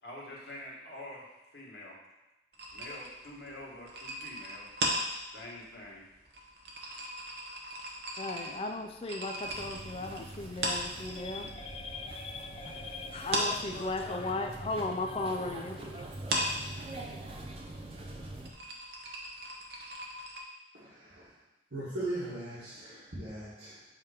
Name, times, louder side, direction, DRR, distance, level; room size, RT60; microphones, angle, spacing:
voice 1, 0.0-1.3 1.5-2.0 2.7-4.8 5.3-6.1, left 1 dB, 70° left, -3 dB, 1.6 m, -46 dB
sound 1, 2.5-11.5 11.8-12.8 13.1-20.4, right 1 dB, 60° right, 0.9 m, -37 dB
voice 2, 8.2-16.1, left 2 dB, 30° left, 4 dB, 0.4 m, -36 dB
sound 2, 9.4-18.5, right 2 dB, 30° right, 0.6 m, -45 dB
voice 3, 20.7-21.3 21.7-23.8, right 1 dB, 85° right, -12 dB, 2.0 m, -39 dB
7.3 x 2.9 x 5.0 m, 0.98 s
head